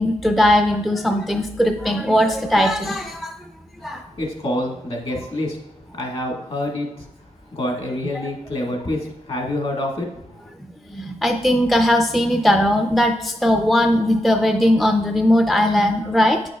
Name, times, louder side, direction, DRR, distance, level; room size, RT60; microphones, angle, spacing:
voice 1, 0.0-3.4 3.8-4.0 10.9-16.4, left 1 dB, ahead, 6 dB, 0.3 m, -18 dB
voice 2, 3.8-5.6 5.9-7.1 7.5-10.1 10.4-10.5, left 1 dB, 50° left, 0 dB, 1.4 m, -27 dB
8.8 x 6.2 x 2.2 m, 0.88 s
wide cardioid pair, 125°, 12 cm